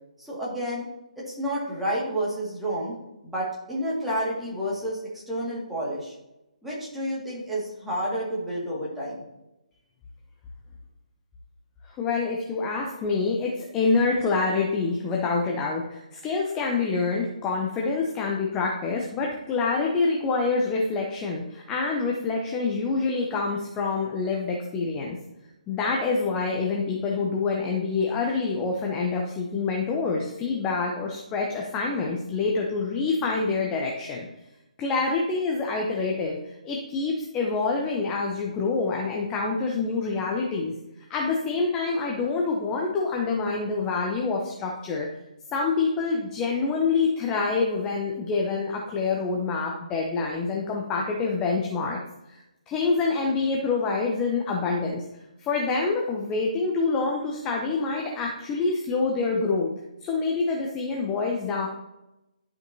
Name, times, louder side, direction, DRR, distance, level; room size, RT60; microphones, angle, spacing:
voice 1, 0.2-0.9 1.2-2.9 3.2-5.0 5.3-6.1 6.6-9.2, equal, ahead, -8 dB, 2.1 m, -30 dB
voice 2, 12.0-25.1 25.7-34.3 34.8-40.7 41.1-45.1 45.5-52.0 52.3-52.4 52.7-55.0 55.4-59.7 60.0-61.7, left 4 dB, 15° left, -1 dB, 0.8 m, -26 dB
12.0 x 5.3 x 2.8 m, 0.92 s
figure-of-eight pair, 140°, 4 cm